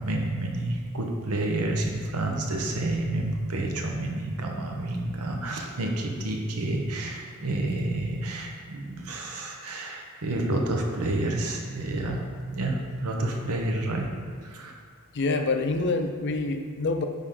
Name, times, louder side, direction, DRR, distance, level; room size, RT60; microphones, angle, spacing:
voice 1, 0.0-12.2 12.5-14.1 14.4-14.7, right 1 dB, 85° right, 2 dB, 0.9 m, -29 dB
voice 2, 15.1-17.1, left 3 dB, 50° left, 6 dB, 0.5 m, -26 dB
9.6 x 3.6 x 3.8 m, 2.1 s
head